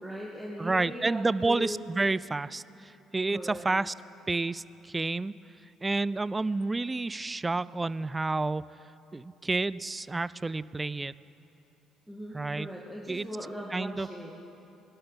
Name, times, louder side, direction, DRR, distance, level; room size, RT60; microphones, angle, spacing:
voice 1, 0.0-1.8 3.3-3.7 12.1-14.3, equal, ahead, -4 dB, 1.9 m, -39 dB
voice 2, 0.6-3.9 4.3-5.3 5.8-8.6 9.1-11.1 12.3-12.7 13.1-13.3 13.7-14.1, right 3 dB, 20° right, 19 dB, 0.3 m, -30 dB
20.5 x 12.0 x 4.1 m, 3.0 s
hypercardioid pair, 50°, 0 cm